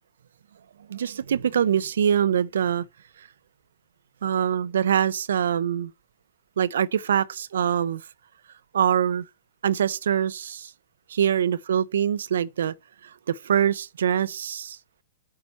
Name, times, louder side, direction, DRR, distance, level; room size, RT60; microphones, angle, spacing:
voice 1, 0.9-2.9 4.2-5.9 6.6-8.0 8.7-9.2 9.6-10.7 11.1-12.7 13.0-14.8, right 9 dB, 75° right, 0.4 m, -24 dB
8.2 x 4.2 x 5.5 m
hypercardioid pair, 115°, 0 cm